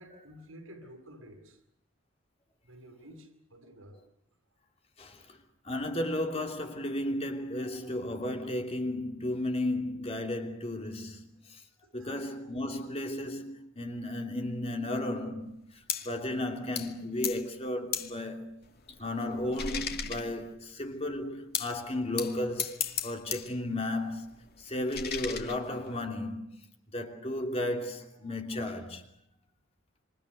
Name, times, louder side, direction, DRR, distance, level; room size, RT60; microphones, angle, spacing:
voice 1, 0.0-1.6 2.6-4.0 11.8-12.2, equal, 75° right, 8.0 m, -51 dB
voice 2, 5.0-5.4 5.6-11.6 11.9-18.5 19.0-26.5 26.9-29.0, left 1 dB, 30° left, 3.0 m, -34 dB
sound 1, 15.9-16.2 16.8-17.0 17.2-17.5 17.9-18.2 18.6-20.7 21.5-21.8 22.2-23.5 23.8-26.1, left 8 dB, 50° left, 2.3 m, -37 dB
27.5 x 26.5 x 6.7 m
head